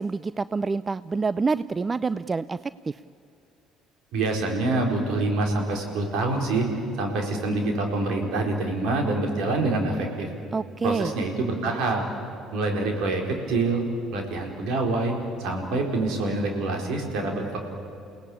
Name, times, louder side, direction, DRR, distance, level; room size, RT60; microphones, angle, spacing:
voice 1, 0.0-3.0 10.5-11.1, right 4 dB, 30° right, 17 dB, 0.5 m, -27 dB
voice 2, 4.1-6.7 7.0-10.3 10.8-12.0 12.5-13.2 13.5-13.8 14.1-15.1 15.4-17.6, right 2 dB, 65° right, 2 dB, 4.3 m, -26 dB
29.5 x 17.5 x 8.7 m, 2.7 s
hypercardioid pair, 55°, 0 cm